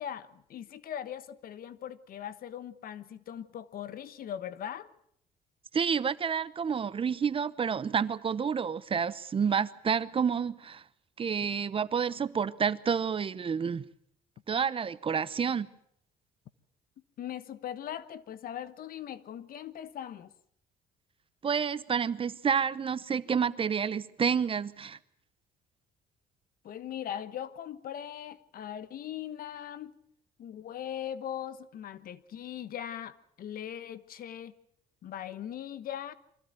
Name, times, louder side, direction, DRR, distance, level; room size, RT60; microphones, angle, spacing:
voice 1, 0.0-4.9 17.2-20.3 26.6-30.0 30.4-34.5 35.0-36.1, left 10 dB, 60° left, 1.3 m, -40 dB
voice 2, 5.7-10.8 11.2-13.8 14.5-15.7 21.4-25.0, right 6 dB, 30° right, 0.8 m, -29 dB
24.5 x 16.0 x 9.3 m
cardioid pair, 110°, 17 cm